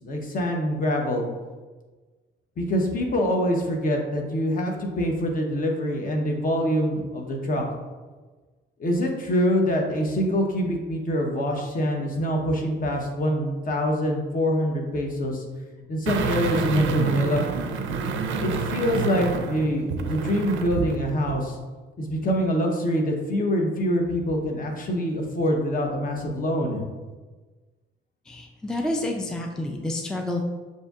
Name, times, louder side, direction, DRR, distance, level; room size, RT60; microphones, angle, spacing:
voice 1, 0.0-1.2 2.6-7.6 8.8-15.4 15.9-17.5 18.4-21.6 22.0-26.8, equal, 45° left, 1 dB, 0.8 m, -25 dB
sound 1, 16.1-21.0 21.3-21.4, right 5 dB, 75° right, 0.5 m, -28 dB
voice 2, 28.3-30.4, left 1 dB, 5° left, 2 dB, 0.4 m, -29 dB
6.5 x 2.7 x 2.4 m, 1.3 s
cardioid pair, 90°, 20 cm